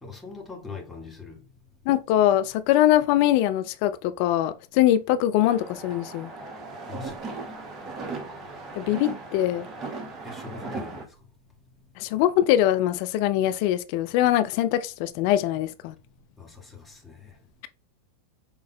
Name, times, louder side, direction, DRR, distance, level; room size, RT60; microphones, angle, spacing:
voice 1, 0.0-1.4 6.9-7.2 10.2-11.1 16.4-17.3, left 4 dB, 10° left, 1.5 m, -41 dB
voice 2, 1.9-6.3 8.8-9.7 12.0-15.9, left 13 dB, 45° left, 0.3 m, -22 dB
sound 1, 5.4-11.0, right 3 dB, 30° right, 1.1 m, -37 dB
5.8 x 3.6 x 2.2 m
figure-of-eight pair, 90°, 0 cm